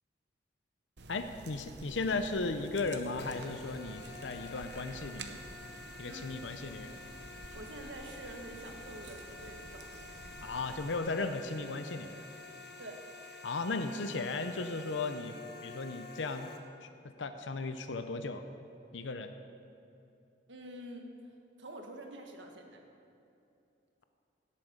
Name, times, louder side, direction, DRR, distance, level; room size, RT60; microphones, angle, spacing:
sound 1, 1.0-11.0, right 2 dB, 65° right, 0.9 m, -50 dB
voice 1, 1.1-5.4 6.0-6.9 10.4-12.2 13.4-15.4 15.6-16.5 16.8-16.9 17.2-18.5 18.9-19.3, left 3 dB, 90° left, 8 dB, 0.7 m, -36 dB
sound 2, 3.2-16.6, left 3 dB, 65° left, 1.3 m, -49 dB
voice 2, 6.1-6.5 7.5-10.1 12.8-13.1 20.5-21.1 21.6-22.8, right 1 dB, 85° right, 2 dB, 1.6 m, -47 dB
17.0 x 8.5 x 5.1 m, 2.7 s
head